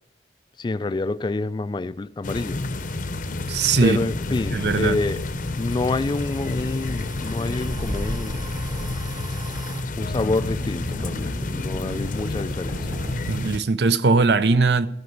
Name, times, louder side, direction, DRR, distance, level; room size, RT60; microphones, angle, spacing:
voice 1, 0.6-2.6 3.8-5.2 5.6-8.5 10.0-12.9, left 3 dB, 25° left, 0.3 m, -27 dB
sound 1, 2.2-13.6, left 2 dB, 50° left, 0.7 m, -30 dB
voice 2, 3.5-4.0 4.5-5.0 9.7-9.9 13.2-14.9, right 4 dB, 65° right, 0.6 m, -20 dB
sound 2, 4.1-9.8, right 4 dB, 25° right, 0.6 m, -44 dB
sound 3, 7.7-9.1 9.9-13.2, equal, 40° right, 1.8 m, -34 dB
14.0 x 5.3 x 7.8 m
head